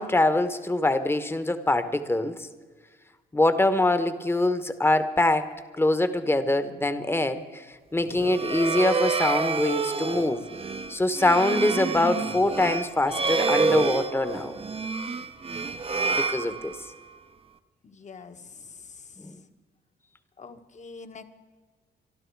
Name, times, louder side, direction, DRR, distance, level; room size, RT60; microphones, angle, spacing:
voice 1, 0.0-2.4 3.3-7.6 7.9-10.5 10.9-14.6 16.1-16.7 19.2-19.4, left 2 dB, 10° left, 11 dB, 1.1 m, -24 dB
sound 1, 8.1-17.1, right 4 dB, 30° right, 0.8 m, -28 dB
voice 2, 17.8-19.4 20.4-21.3, left 4 dB, 35° left, 7 dB, 1.3 m, -45 dB
25.0 x 12.0 x 4.7 m, 1.4 s
cardioid pair, 90°, 20 cm